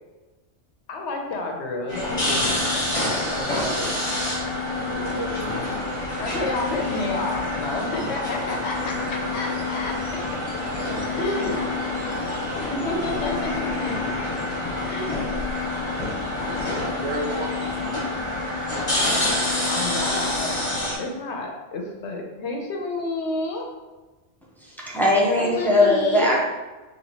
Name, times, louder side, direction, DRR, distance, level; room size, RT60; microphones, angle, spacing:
voice 1, 0.9-2.7 3.3-4.0 6.2-9.9 11.2-11.6 12.7-13.9 14.8-15.3 19.7-20.6 21.0-23.6 25.4-26.3, left 2 dB, 70° left, 2 dB, 0.9 m, -30 dB
sound 1, 1.9-20.9, left 2 dB, 30° left, 1.1 m, -27 dB
voice 2, 4.8-5.6 10.8-11.7 16.7-18.5, right 2 dB, 90° right, 1 dB, 1.1 m, -34 dB
voice 3, 24.9-26.4, left 1 dB, ahead, -5 dB, 0.6 m, -19 dB
4.1 x 2.9 x 2.8 m, 1.2 s
omnidirectional pair, 1.2 m